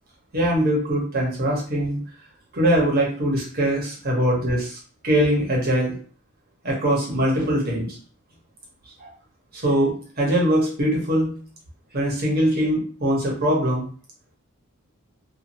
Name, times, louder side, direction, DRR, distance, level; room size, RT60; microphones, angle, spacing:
voice 1, 0.3-2.0 2.5-5.9 6.6-8.0 9.0-9.1 9.5-11.3 11.9-13.8, equal, 45° right, -3 dB, 1.0 m, -22 dB
2.8 x 2.5 x 2.6 m, 0.43 s
head